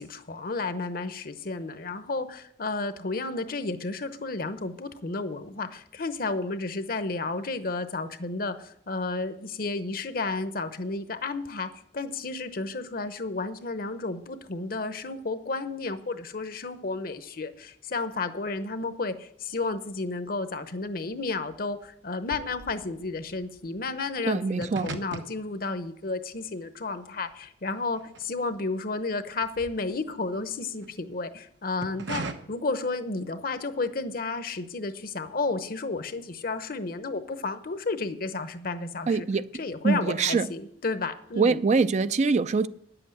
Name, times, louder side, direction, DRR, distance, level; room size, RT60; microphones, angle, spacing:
voice 1, 0.0-39.3 39.6-41.6, left 3 dB, 55° left, 0.9 m, -32 dB
sound 1, 19.5-20.3 20.5-28.8 29.2-30.9 31.5-32.3, right 3 dB, 85° right, 1.1 m, -41 dB
voice 2, 24.2-24.9 39.1-39.5 39.8-40.5 41.4-42.7, right 4 dB, 40° right, 0.4 m, -24 dB
10.0 x 7.9 x 7.9 m
head